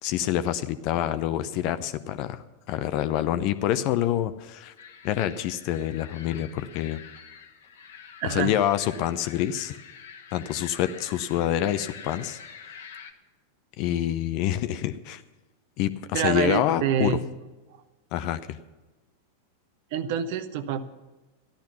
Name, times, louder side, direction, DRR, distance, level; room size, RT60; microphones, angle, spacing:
voice 1, 0.0-4.7 5.0-7.0 8.2-9.8 10.3-12.4 13.8-15.2 15.8-17.2 18.1-18.6, left 11 dB, 45° left, 12 dB, 0.7 m, -27 dB
sound 1, 4.8-13.1, left 7 dB, 60° left, 1.2 m, -46 dB
voice 2, 8.2-8.5 16.1-17.2 19.9-20.8, right 8 dB, 50° right, 12 dB, 1.0 m, -26 dB
14.0 x 12.0 x 5.8 m, 1.2 s
figure-of-eight pair, 90°, 0 cm